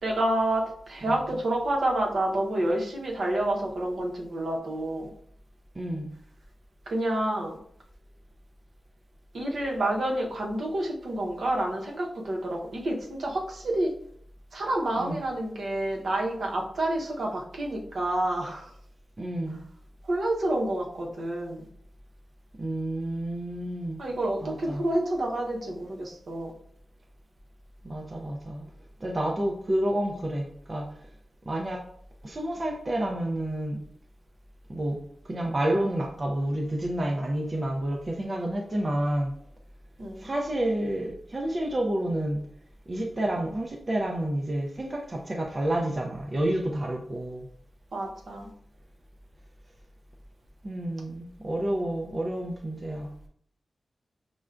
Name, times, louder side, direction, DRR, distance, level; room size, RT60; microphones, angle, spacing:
voice 1, 0.0-5.1 6.9-7.6 9.3-13.9 14.5-18.7 20.0-21.7 24.0-26.5 40.0-40.3 47.9-48.5, right 1 dB, 65° right, -1 dB, 0.8 m, -29 dB
voice 2, 5.8-6.1 15.0-15.2 19.2-19.6 22.6-24.0 24.4-24.8 27.8-28.6 29.0-30.9 31.5-31.8 32.2-33.8 34.7-35.0 35.2-39.3 40.2-42.4 42.9-47.5 50.6-53.1, right 1 dB, 30° right, 0 dB, 0.4 m, -29 dB
6.0 x 2.2 x 2.4 m, 0.64 s
wide cardioid pair, 160°, 0 cm